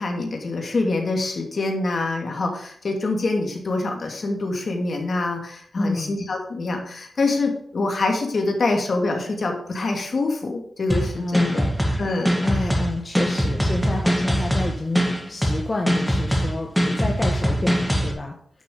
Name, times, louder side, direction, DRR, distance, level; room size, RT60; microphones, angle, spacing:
voice 1, 0.0-11.6 12.0-12.8, left 2 dB, 55° left, 2 dB, 2.6 m, -25 dB
voice 2, 5.8-6.2 11.2-11.7 12.4-18.4, left 2 dB, 35° left, 1 dB, 1.4 m, -29 dB
sound 1, 10.9-18.1, equal, ahead, 2.3 m, -22 dB
10.5 x 6.3 x 5.2 m, 0.65 s
cardioid pair, 65°, 0 cm